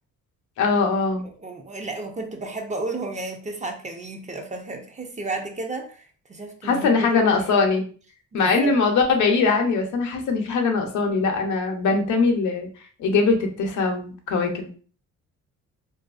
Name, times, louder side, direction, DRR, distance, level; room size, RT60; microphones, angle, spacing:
voice 1, 0.6-1.3 6.6-7.8 8.3-12.7 13.0-14.7, left 4 dB, 75° left, 0.7 m, -21 dB
voice 2, 1.4-7.5 8.3-8.8, right 2 dB, 25° right, 0.5 m, -33 dB
2.5 x 2.3 x 2.3 m
cardioid pair, 90°, 30 cm